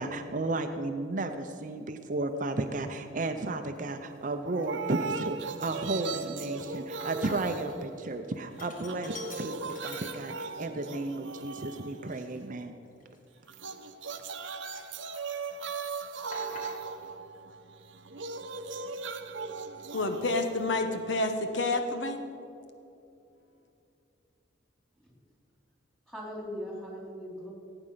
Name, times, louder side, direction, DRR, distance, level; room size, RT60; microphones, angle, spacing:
voice 1, 0.0-12.7, right 2 dB, 45° right, 7 dB, 0.6 m, -33 dB
Sink (filling or washing), 2.5-2.7 3.3-3.9 4.2-4.3 4.6-7.8 8.1-10.6 11.1-11.2 11.9-14.4 14.7-15.5 15.8-17.1, left 3 dB, 45° left, 1.8 m, -49 dB
sound 1, 4.5-8.4 8.7-12.5 13.5-21.5, right 4 dB, 75° right, 0.8 m, -39 dB
voice 2, 19.9-22.2, left 2 dB, 70° left, 7 dB, 1.1 m, -29 dB
voice 3, 26.1-27.5, equal, 5° left, -2 dB, 3.3 m, -40 dB
17.0 x 8.9 x 5.7 m, 2.7 s
head